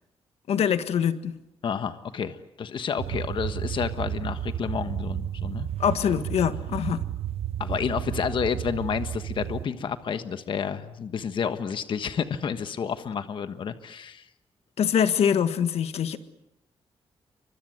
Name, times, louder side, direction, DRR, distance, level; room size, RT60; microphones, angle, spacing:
voice 1, 0.5-1.4 5.8-7.0 14.8-16.2, left 8 dB, 85° left, 10 dB, 1.6 m, -24 dB
voice 2, 1.6-5.7 7.6-14.3, left 6 dB, 55° left, 9 dB, 1.4 m, -30 dB
sound 1, 3.0-9.7, right 11 dB, 75° right, 1.2 m, -32 dB
30.0 x 24.5 x 8.0 m, 0.83 s
wide cardioid pair, 150°, 10 cm